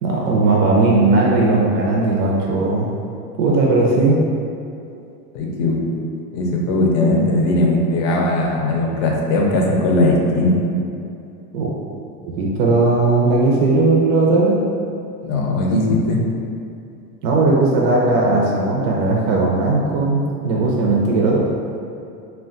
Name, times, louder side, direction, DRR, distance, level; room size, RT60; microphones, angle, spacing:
voice 1, 0.0-2.9 3.4-4.2 11.5-11.7 12.2-14.7 17.2-21.5, right 2 dB, 70° right, -3 dB, 0.6 m, -17 dB
voice 2, 5.3-5.8 6.3-10.6 15.2-16.2, left 2 dB, 45° left, -1 dB, 0.5 m, -18 dB
2.2 x 2.2 x 3.7 m, 2.6 s
supercardioid pair, 145°, 49 cm